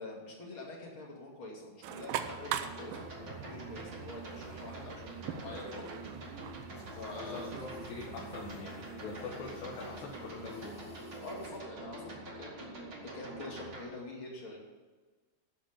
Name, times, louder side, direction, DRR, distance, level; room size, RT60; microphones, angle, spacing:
voice 1, 0.0-6.0 6.9-7.5 11.2-14.6, left 2 dB, 35° left, -3 dB, 2.9 m, -46 dB
sound 1, 1.8-8.5, right 10 dB, 90° right, 2.0 m, -42 dB
sound 2, 2.2-13.8, right 2 dB, 40° right, 2.3 m, -45 dB
sound 3, 6.7-11.6, left 2 dB, 50° left, 4.5 m, -59 dB
voice 2, 7.2-10.9, left 4 dB, 80° left, -4 dB, 3.7 m, -44 dB
12.5 x 5.2 x 8.9 m, 1.3 s
omnidirectional pair, 4.8 m